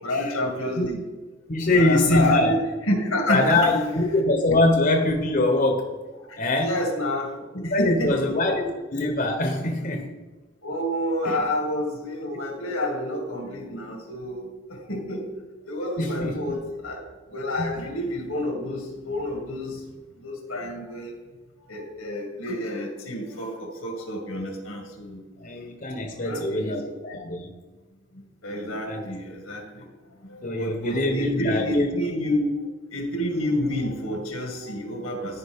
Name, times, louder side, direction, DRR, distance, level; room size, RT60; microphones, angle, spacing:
voice 1, 0.0-1.0 1.7-2.6 2.9-3.7 6.3-8.4 10.6-15.3 15.6-19.8 20.2-21.1 21.7-25.2 26.2-27.0 28.1-29.9 30.2-35.4, left 1 dB, 90° left, 2 dB, 2.1 m, -29 dB
voice 2, 1.5-2.5 3.3-5.9 6.4-6.7 7.7-10.1 11.2-11.4 16.0-16.4 17.6-17.7 25.4-27.5 28.7-29.0 30.4-31.9, left 2 dB, 40° left, 3 dB, 1.0 m, -23 dB
14.0 x 5.2 x 3.6 m, 1.2 s
head